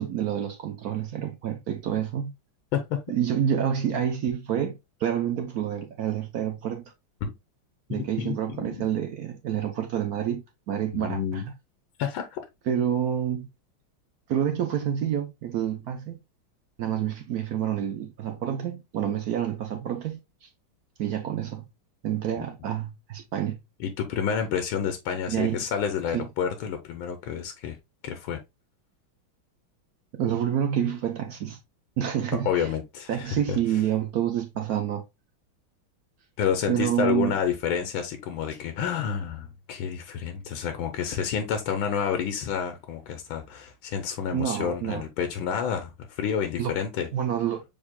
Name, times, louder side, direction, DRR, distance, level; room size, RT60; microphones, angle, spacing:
voice 1, 0.0-2.3 3.1-6.9 7.9-11.4 12.7-13.5 14.3-16.2 16.8-20.5 21.0-21.7 22.0-23.6 25.3-25.6 26.1-26.2 30.1-31.6 32.0-32.7 33.1-35.0 36.7-37.3 44.3-45.0 46.6-46.7 47.1-47.6, right 10 dB, 70° right, 0.9 m, -28 dB
voice 2, 7.9-8.9 10.9-11.5 12.0-12.4 22.4-22.5 23.8-27.8 28.0-28.4 32.4-33.6 36.4-47.1, left 7 dB, 90° left, 1.6 m, -29 dB
6.2 x 3.6 x 2.2 m
omnidirectional pair, 2.2 m